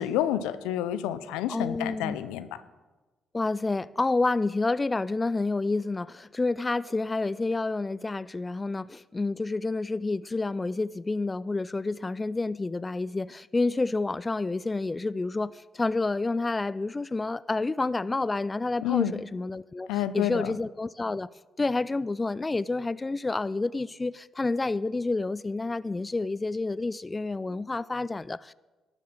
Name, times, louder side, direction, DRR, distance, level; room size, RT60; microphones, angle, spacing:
voice 1, 0.0-2.5 18.8-19.2 19.9-20.5, left 11 dB, 90° left, 0.5 m, -29 dB
voice 2, 1.5-2.2 3.3-21.3 21.6-28.5, left 3 dB, 25° left, 0.3 m, -29 dB
12.5 x 7.4 x 6.6 m
supercardioid pair, 60°, 0 cm